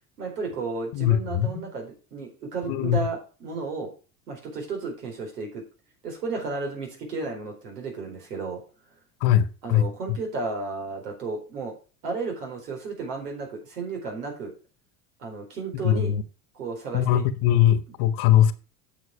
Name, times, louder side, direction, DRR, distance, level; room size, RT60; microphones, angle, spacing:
voice 1, 0.2-3.9 4.3-5.6 6.0-8.6 9.6-11.7 12.0-14.5 15.2-16.1 16.5-17.2, right 4 dB, 90° right, 4.4 m, -33 dB
voice 2, 0.9-1.5 2.7-3.0 9.2-9.9 15.8-16.2 16.9-18.5, left 11 dB, 60° left, 1.4 m, -21 dB
9.1 x 6.4 x 4.8 m
hypercardioid pair, 90°, 45 cm